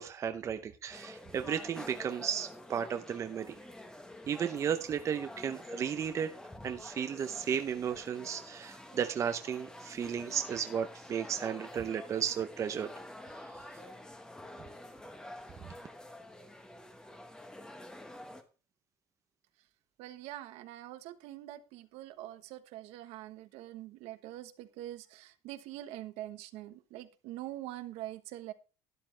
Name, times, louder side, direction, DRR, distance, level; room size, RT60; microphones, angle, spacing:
voice 1, 0.0-3.6 4.3-6.3 6.6-12.9, right 8 dB, 30° right, 8 dB, 0.7 m, -34 dB
sound 1, 0.9-18.4, left 1 dB, 5° left, 1.1 m, -48 dB
voice 2, 20.0-28.5, right 14 dB, 75° right, 10 dB, 1.2 m, -44 dB
12.0 x 11.5 x 3.3 m, 0.34 s
cardioid pair, 165°, 11 cm